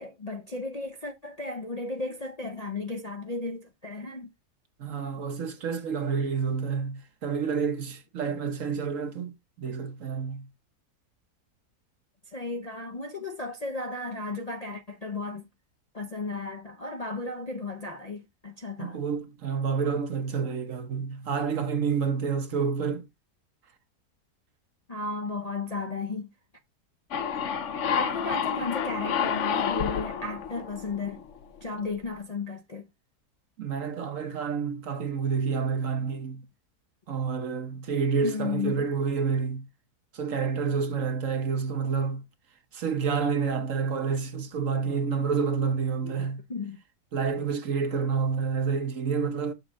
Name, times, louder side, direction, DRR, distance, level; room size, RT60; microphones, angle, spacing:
voice 1, 0.0-4.3 12.3-15.4 15.9-19.0 24.9-26.3 27.9-31.2 31.6-32.9 38.2-38.8 46.0-46.8, left 3 dB, 35° left, 0.6 m, -34 dB
voice 2, 4.8-10.5 18.8-23.1 33.6-36.4 37.1-39.7 40.1-42.2 42.7-46.4 47.1-49.5, right 6 dB, 60° right, 1.3 m, -29 dB
sound 1, 27.1-31.6, left 8 dB, 55° left, 1.0 m, -29 dB
6.7 x 3.7 x 6.2 m
omnidirectional pair, 1.6 m